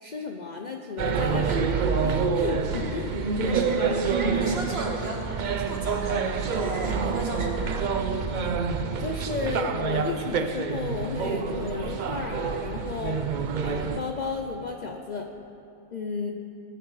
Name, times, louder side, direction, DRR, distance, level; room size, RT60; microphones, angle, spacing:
voice 1, 0.0-3.2 3.7-4.0 9.0-15.3 15.9-16.3, left 4 dB, 80° left, 3 dB, 0.4 m, -33 dB
sound 1, 1.0-14.0, right 5 dB, 75° right, 0.4 m, -27 dB
voice 2, 2.7-3.0 3.4-3.8 4.1-5.3 5.6-7.9, right 2 dB, 45° right, -1 dB, 1.7 m, -35 dB
18.0 x 10.0 x 3.2 m, 2.9 s
omnidirectional pair, 1.5 m